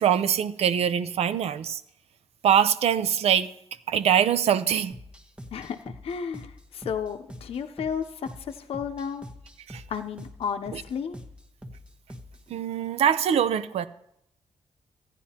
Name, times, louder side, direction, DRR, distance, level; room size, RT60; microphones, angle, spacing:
voice 1, 0.0-1.8 2.4-3.5 3.9-4.9 9.7-9.8 10.7-10.8 12.5-13.9, right 9 dB, 80° right, 13 dB, 0.6 m, -23 dB
sound 1, 4.9-12.5, equal, 10° right, 1.1 m, -45 dB
voice 2, 5.5-9.3 9.9-11.2, left 7 dB, 70° left, 5 dB, 0.6 m, -33 dB
15.0 x 9.9 x 2.9 m, 0.75 s
cardioid pair, 85°, 10 cm